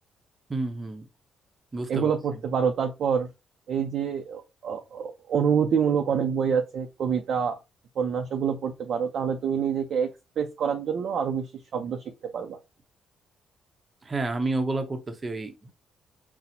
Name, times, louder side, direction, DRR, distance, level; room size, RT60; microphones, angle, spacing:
voice 1, 0.5-1.1 1.7-2.1 14.0-15.7, right 2 dB, 30° right, 0.6 m, -30 dB
voice 2, 1.9-3.3 3.7-7.6 8.0-12.0 12.3-12.6, right 7 dB, 65° right, 0.4 m, -27 dB
4.1 x 2.1 x 2.6 m
cardioid pair, 90°, 0 cm